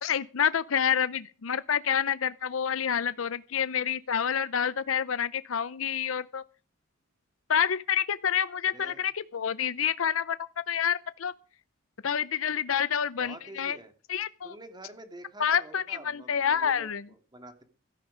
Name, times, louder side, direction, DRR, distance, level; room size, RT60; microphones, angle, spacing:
voice 1, 0.0-6.4 7.5-10.4 10.7-11.3 12.0-13.8 14.1-14.5 15.4-17.0, left 8 dB, 75° left, 0.6 m, -28 dB
voice 2, 8.7-9.0 13.2-13.9 14.4-17.6, right 1 dB, 20° right, 2.3 m, -47 dB
16.0 x 13.0 x 5.0 m
head